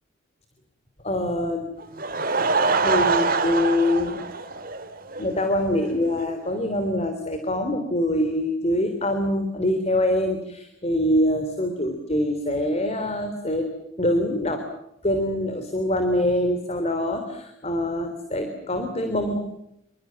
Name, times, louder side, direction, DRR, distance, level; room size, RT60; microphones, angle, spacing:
voice 1, 1.0-1.7 2.8-4.2 5.2-14.7 15.0-19.4, left 1 dB, 30° left, 7 dB, 3.4 m, -24 dB
Laughter / Crowd, 1.8-5.3 5.6-5.7 6.2-6.3 6.5-6.6, right 4 dB, 45° right, 2.7 m, -24 dB
28.0 x 25.5 x 7.5 m, 0.82 s
head